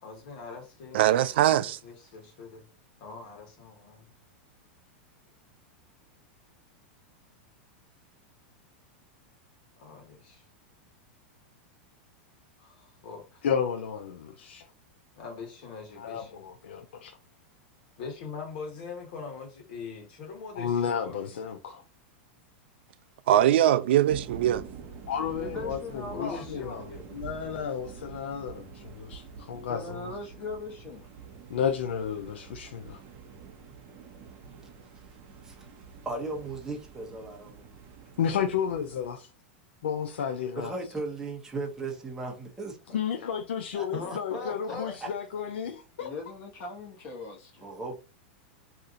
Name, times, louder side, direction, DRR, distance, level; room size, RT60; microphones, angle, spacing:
voice 1, 0.0-1.3 1.6-2.7 3.0-4.0 9.8-10.4 12.6-13.4 15.2-16.4 18.0-21.4 26.0-27.1 34.4-34.6 43.9-44.9, left 4 dB, 60° left, 1.3 m, -42 dB
voice 2, 0.9-1.8 23.3-24.6, right 12 dB, 75° right, 0.3 m, -22 dB
voice 3, 13.4-14.7 16.0-17.2 20.6-21.8 25.1-26.9 27.1-30.1 31.5-33.0 38.2-39.3 39.8-40.7 42.9-46.1, left 7 dB, 85° left, 0.4 m, -32 dB
sound 1, 24.1-39.1, right 6 dB, 40° right, 0.7 m, -46 dB
voice 4, 25.4-26.9 29.7-31.1 46.0-47.7, left 3 dB, 35° left, 1.2 m, -40 dB
voice 5, 36.0-37.7 40.6-42.8 43.7-44.2 45.0-45.1 47.6-48.0, right 3 dB, 10° right, 0.9 m, -36 dB
2.8 x 2.5 x 3.7 m
supercardioid pair, 130°, 6 cm